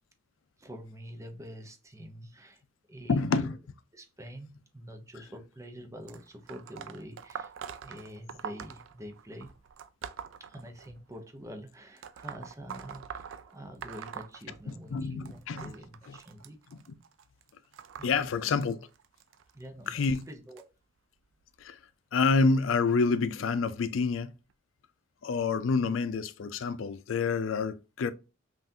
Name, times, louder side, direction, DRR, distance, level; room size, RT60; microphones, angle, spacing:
voice 1, 0.6-2.6 2.9-3.5 3.9-7.5 7.8-9.5 10.4-16.6 18.0-18.6 19.5-20.7, equal, 15° right, 0.7 m, -46 dB
voice 2, 3.1-3.6 14.7-15.7 16.1-16.2 18.0-18.8 19.9-20.2 21.6-21.8 22.1-24.3 25.2-28.1, left 4 dB, 90° left, 0.4 m, -28 dB
sound 1, 6.1-11.2 12.0-15.0 15.3-20.6 21.4-21.7 22.7-22.8 23.7-23.8 24.5-24.6, right 7 dB, 75° right, 0.4 m, -44 dB
5.6 x 2.5 x 2.7 m
head